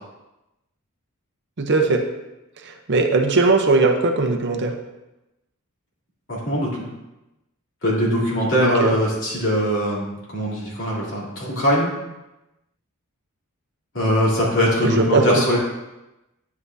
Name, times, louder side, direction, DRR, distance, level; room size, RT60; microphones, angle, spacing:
voice 1, 1.6-2.0 2.6-4.7 8.6-8.9 14.8-15.4, right 3 dB, 55° right, 4 dB, 0.8 m, -19 dB
voice 2, 6.3-6.9 7.8-10.0 10.3-11.9 13.9-15.6, equal, 60° left, -6 dB, 3.3 m, -21 dB
9.5 x 8.2 x 2.8 m, 0.96 s
head